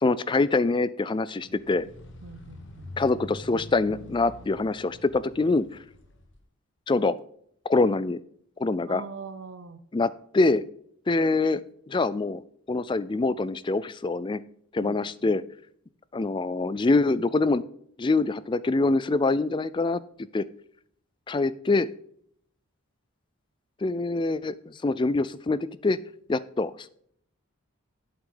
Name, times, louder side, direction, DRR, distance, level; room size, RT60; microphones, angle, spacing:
voice 1, 0.0-1.8 3.0-5.7 6.9-7.1 7.7-8.2 8.6-9.0 9.9-10.6 11.1-11.6 11.9-12.4 12.7-14.4 14.7-15.4 16.1-17.6 18.0-20.0 20.3-20.5 21.3-21.9 23.8-26.0 26.3-26.7, left 3 dB, 20° left, 17 dB, 0.3 m, -24 dB
sound 1, 1.4-6.4, left 1 dB, 55° left, 1.4 m, -45 dB
voice 2, 2.2-2.9 8.8-9.8 14.8-15.3, right 4 dB, 65° right, 9 dB, 0.7 m, -42 dB
8.2 x 8.0 x 3.8 m, 0.66 s
head